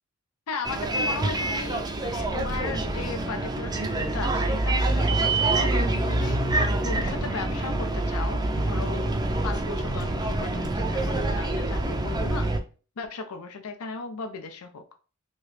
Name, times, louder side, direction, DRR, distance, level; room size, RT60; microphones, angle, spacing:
voice 1, 0.5-6.4 6.8-9.1 9.4-12.5 13.0-14.8, left 4 dB, 85° left, 6 dB, 0.5 m, -36 dB
Bus, 0.6-12.6, right 2 dB, 20° right, 0.4 m, -26 dB
3.0 x 2.8 x 3.1 m, 0.36 s
head